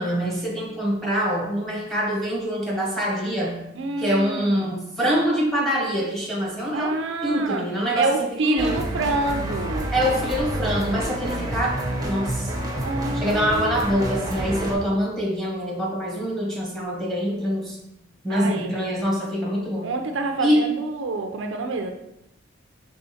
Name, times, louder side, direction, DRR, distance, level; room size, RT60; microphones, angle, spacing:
voice 1, 0.0-3.6 4.0-6.9 7.2-8.1 8.4-8.8 9.9-12.5 13.1-17.8 18.2-19.9 20.4-20.6, equal, ahead, -3 dB, 1.1 m, -24 dB
voice 2, 3.8-4.7 6.7-7.7 7.9-9.9 12.8-14.0 18.3-18.8 19.8-21.9, right 3 dB, 65° right, 4 dB, 0.4 m, -27 dB
sound 1, 8.6-14.7, right 1 dB, 20° right, 0.6 m, -28 dB
5.6 x 3.4 x 2.7 m, 0.83 s
head